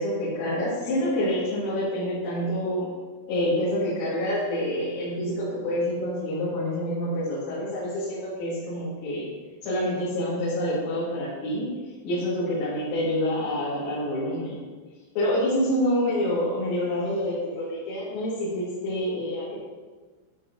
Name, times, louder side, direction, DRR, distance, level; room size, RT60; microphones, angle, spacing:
voice 1, 0.0-2.9 3.3-9.2 9.6-11.7 12.0-14.5 15.2-19.6, equal, 80° left, -10 dB, 4.5 m, -27 dB
10.0 x 6.3 x 2.7 m, 1.3 s
omnidirectional pair, 6.0 m